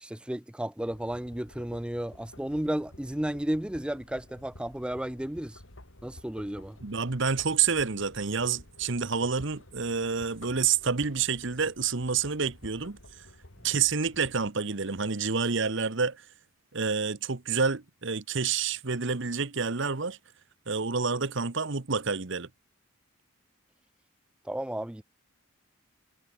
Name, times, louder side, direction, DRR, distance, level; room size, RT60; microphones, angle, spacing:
voice 1, 0.0-5.6 6.0-6.8 24.5-25.0, right 1 dB, 5° right, 0.4 m, -33 dB
sound 1, 0.8-14.5, left 1 dB, 70° left, 4.3 m, -52 dB
voice 2, 6.8-13.0 13.6-16.2 16.7-20.2 20.7-22.5, right 5 dB, 60° right, 1.1 m, -28 dB
head